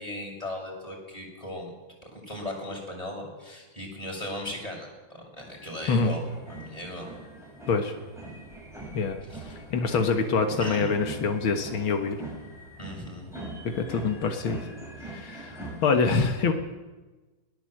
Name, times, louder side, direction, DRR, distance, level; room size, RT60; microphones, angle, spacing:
voice 1, 0.0-1.7 2.0-6.2 6.5-7.1 9.3-9.6 10.6-10.9 12.8-13.3, left 1 dB, 15° left, -1 dB, 6.6 m, -37 dB
sound 1, 5.4-15.9, right 2 dB, ahead, 7.3 m, -42 dB
voice 2, 9.4-12.2 13.6-14.6 15.0-16.5, left 4 dB, 85° left, 5 dB, 2.3 m, -25 dB
21.0 x 18.0 x 7.8 m, 1.2 s
omnidirectional pair, 2.2 m